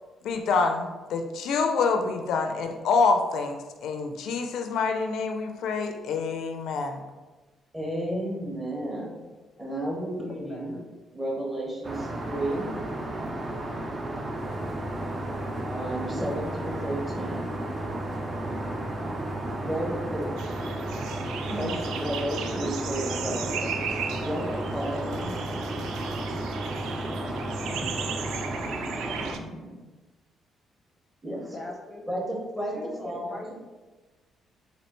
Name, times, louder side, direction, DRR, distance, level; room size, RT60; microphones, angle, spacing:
voice 1, 0.2-7.0, left 4 dB, 80° left, 5 dB, 0.4 m, -26 dB
voice 2, 7.7-9.2 9.6-10.8 11.1-12.7 15.6-17.6 19.6-20.3 21.4-23.7 24.2-25.4 27.6-28.2 28.7-29.8 31.2-31.5 32.1-33.3, right 1 dB, 15° right, -4 dB, 1.4 m, -33 dB
voice 3, 10.3-10.9 31.5-32.0 32.7-33.6, left 1 dB, 25° left, 0 dB, 0.6 m, -40 dB
Aircraft, 11.8-29.3, right 1 dB, 35° right, 0.6 m, -34 dB
sound 1, 14.3-28.5, right 1 dB, 70° right, 1.2 m, -39 dB
sound 2, 20.4-29.4, right 7 dB, 90° right, 0.3 m, -37 dB
4.2 x 2.7 x 3.0 m, 1.2 s
cardioid pair, 90°, 0 cm